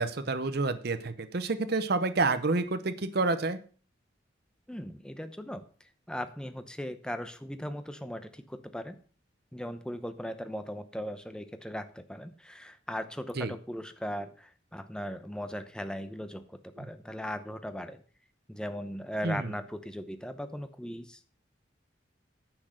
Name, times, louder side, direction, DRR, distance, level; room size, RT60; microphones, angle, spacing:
voice 1, 0.0-3.6 13.4-13.5 16.8-16.9 19.2-19.5, right 3 dB, 55° right, 10 dB, 0.7 m, -29 dB
voice 2, 4.7-5.6 6.1-9.0 9.5-16.4 16.8-18.0 18.5-21.2, equal, 5° left, 9 dB, 0.8 m, -38 dB
10.0 x 6.3 x 6.3 m, 0.42 s
head